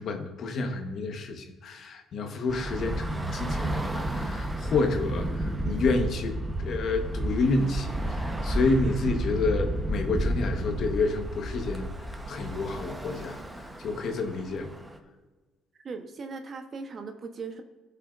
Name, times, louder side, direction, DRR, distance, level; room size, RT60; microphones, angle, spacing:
voice 1, 0.0-11.9 12.3-13.4 13.8-14.7, left 3 dB, 60° left, 5 dB, 1.1 m, -29 dB
Bus / Traffic noise roadway noise, 2.5-15.0, right 1 dB, 15° right, 0.9 m, -32 dB
voice 2, 15.8-17.6, right 4 dB, 45° right, 6 dB, 0.9 m, -38 dB
16.5 x 5.7 x 2.5 m, 1.3 s
cardioid pair, 85°, 0 cm